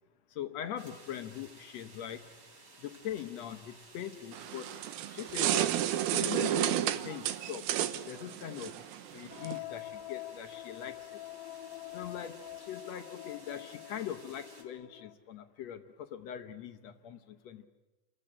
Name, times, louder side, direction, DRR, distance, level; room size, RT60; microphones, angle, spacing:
voice 1, 0.3-2.4 2.8-4.7 5.1-5.9 6.1-7.7 8.1-8.8 9.1-11.2 11.9-17.7, left 10 dB, 70° left, 8 dB, 1.7 m, -42 dB
sound 1, 0.8-14.6, right 3 dB, 35° right, 4.3 m, -56 dB
sound 2, 4.3-9.6, right 12 dB, 85° right, 2.8 m, -32 dB
sound 3, 9.3-15.1, left 15 dB, 85° left, 3.0 m, -45 dB
28.5 x 15.0 x 9.9 m, 1.1 s
omnidirectional pair, 4.2 m